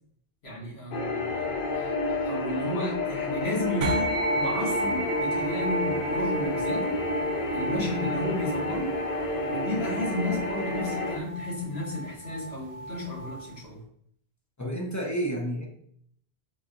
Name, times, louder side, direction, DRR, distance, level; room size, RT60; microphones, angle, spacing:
voice 1, 0.4-7.0 7.5-8.9 9.4-13.8, left 1 dB, 80° left, -6 dB, 1.6 m, -33 dB
sound 1, 0.9-11.2, left 2 dB, 65° left, 0.7 m, -30 dB
sound 2, 3.8-13.5, right 1 dB, 90° right, 0.8 m, -33 dB
voice 2, 14.6-15.7, right 1 dB, 25° left, -1 dB, 0.4 m, -30 dB
3.8 x 2.7 x 2.4 m, 0.65 s
omnidirectional pair, 1.1 m